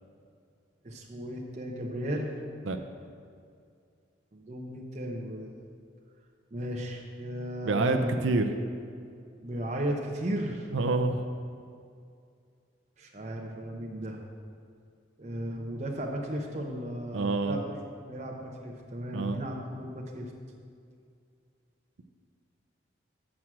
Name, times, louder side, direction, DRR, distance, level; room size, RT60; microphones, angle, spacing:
voice 1, 0.8-2.3 4.3-5.5 6.5-8.3 9.4-10.7 13.0-14.2 15.2-17.6 18.0-20.3, equal, 35° right, -1 dB, 0.8 m, -35 dB
voice 2, 7.6-8.5 10.7-11.2 17.1-17.6 19.1-19.4, right 3 dB, 80° right, 7 dB, 0.5 m, -27 dB
6.2 x 6.2 x 7.2 m, 2.3 s
head